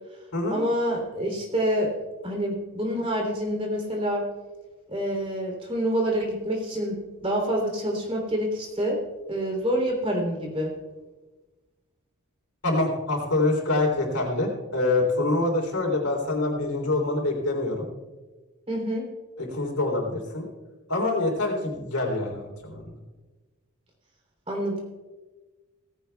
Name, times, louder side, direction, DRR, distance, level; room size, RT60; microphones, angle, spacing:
voice 1, 0.5-1.9 2.2-4.2 4.9-7.0 7.2-9.0 9.3-10.7 18.7-19.0 24.5-24.8, equal, 25° right, 0 dB, 3.3 m, -27 dB
voice 2, 12.6-17.9 19.4-20.4 20.9-22.9, left 2 dB, 90° left, 1 dB, 3.5 m, -25 dB
17.5 x 16.0 x 2.3 m, 1.2 s
head